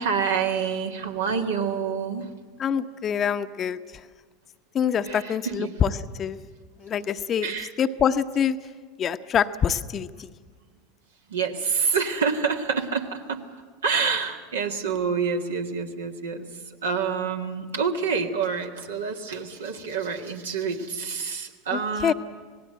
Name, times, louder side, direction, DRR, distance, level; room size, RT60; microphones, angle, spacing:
voice 1, 0.0-2.3 5.0-5.7 7.4-7.7 11.3-13.4 13.8-22.1, right 6 dB, 75° right, 4 dB, 1.7 m, -27 dB
voice 2, 2.6-3.8 4.7-6.4 6.8-7.5 7.8-8.6 9.0-10.3 21.7-22.1, left 8 dB, 35° left, 10 dB, 0.9 m, -25 dB
26.0 x 18.5 x 7.7 m, 1.5 s
figure-of-eight pair, 80°, 0 cm